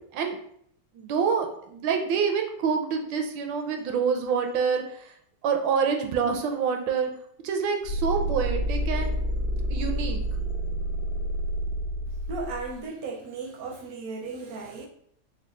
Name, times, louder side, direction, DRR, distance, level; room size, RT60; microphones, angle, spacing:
voice 1, 0.9-5.1 5.4-7.1 7.4-9.1 9.7-10.2, right 6 dB, 90° right, 1.3 m, -27 dB
sound 1, 7.8-12.7, right 1 dB, 85° left, 1.3 m, -28 dB
voice 2, 12.3-14.9, right 3 dB, 70° right, 0.9 m, -35 dB
4.0 x 2.2 x 3.7 m
omnidirectional pair, 2.0 m